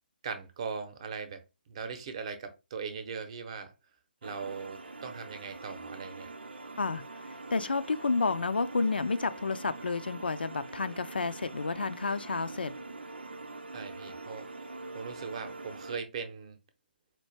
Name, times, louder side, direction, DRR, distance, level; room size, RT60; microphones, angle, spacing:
voice 1, 0.2-1.4 1.7-3.7 4.2-6.3 13.7-14.5 14.9-16.6, right 5 dB, 35° right, 0.7 m, -39 dB
sound 1, 4.2-16.0, right 3 dB, 75° right, 0.5 m, -44 dB
voice 2, 6.8-12.7, left 4 dB, 70° left, 0.4 m, -31 dB
4.4 x 2.5 x 3.0 m
figure-of-eight pair, 140°, 6 cm